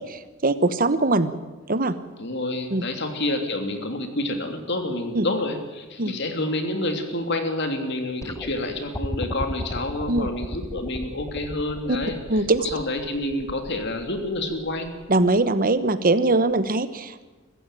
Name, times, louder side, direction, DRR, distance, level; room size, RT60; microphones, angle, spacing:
voice 1, 0.0-1.3 1.7-1.9 2.7-2.9 5.1-5.3 6.0-6.1 10.1-10.3 11.9-12.0 12.3-12.7 15.1-17.2, right 2 dB, 45° right, 13 dB, 1.2 m, -21 dB
voice 2, 2.2-12.2 12.6-14.9, left 1 dB, 60° left, 6 dB, 3.1 m, -28 dB
sound 1, 8.2-15.4 16.5-16.6, left 1 dB, 15° left, 0.7 m, -35 dB
23.0 x 15.0 x 9.2 m, 1.2 s
head